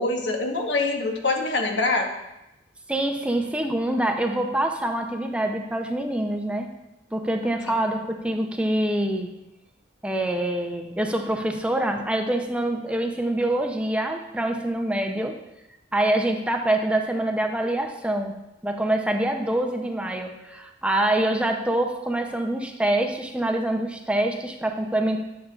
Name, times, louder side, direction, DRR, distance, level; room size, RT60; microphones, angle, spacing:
voice 1, 0.0-2.1, left 2 dB, 80° left, 3 dB, 1.0 m, -24 dB
voice 2, 2.9-6.7 7.1-9.3 10.0-15.4 15.9-25.2, right 1 dB, 5° right, 4 dB, 0.5 m, -25 dB
9.6 x 6.4 x 2.4 m, 0.92 s
head